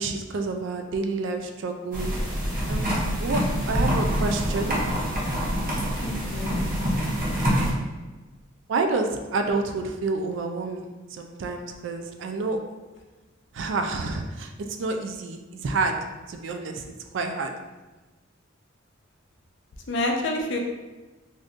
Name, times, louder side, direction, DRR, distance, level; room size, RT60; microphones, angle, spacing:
voice 1, 0.0-2.2 2.7-4.8 8.7-12.6 13.5-16.0 16.3-17.5, right 3 dB, 65° right, 5 dB, 0.3 m, -29 dB
sound 1, 1.9-7.7, equal, 45° right, 0.7 m, -26 dB
voice 2, 6.0-6.6 19.9-20.6, left 2 dB, 60° left, 1 dB, 0.5 m, -28 dB
3.5 x 2.6 x 2.4 m, 1.2 s
head